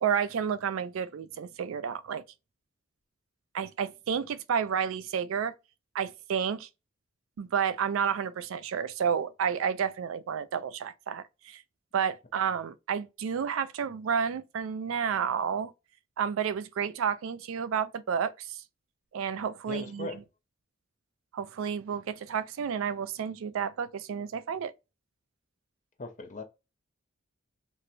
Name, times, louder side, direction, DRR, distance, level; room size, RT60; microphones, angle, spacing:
voice 1, 0.0-2.2 3.5-5.5 5.9-6.7 7.4-11.6 11.9-15.7 16.2-18.6 19.1-20.2 21.3-24.7, right 7 dB, 85° right, 0.4 m, -31 dB
voice 2, 19.7-20.2 26.0-26.4, left 2 dB, 40° left, 0.7 m, -39 dB
4.2 x 2.2 x 2.5 m
head